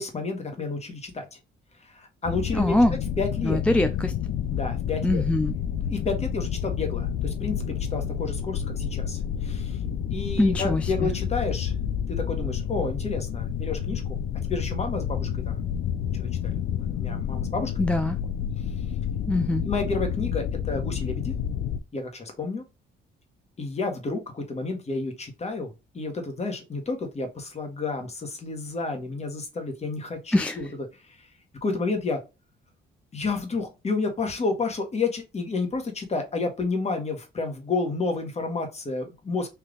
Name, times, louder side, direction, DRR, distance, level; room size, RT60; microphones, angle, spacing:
voice 1, 0.0-1.4 1.9-2.8 3.2-3.6 4.5-5.2 5.9-9.8 10.1-11.7 12.1-14.2 14.4-15.6 16.1-16.3 16.8-17.7 19.6-21.3 21.9-22.6 23.6-30.7 31.1-31.2 31.6-32.2 33.1-39.5, left 3 dB, 35° left, 4 dB, 1.3 m, -30 dB
sound 1, 2.2-21.8, left 8 dB, 70° left, 0.5 m, -29 dB
voice 2, 2.5-3.0 3.4-4.1 5.0-5.5 10.4-11.1 17.8-18.2 19.3-19.7 30.3-30.6, left 1 dB, 5° left, 7 dB, 0.3 m, -23 dB
3.5 x 2.7 x 3.8 m, 0.26 s
cardioid pair, 90°, 20 cm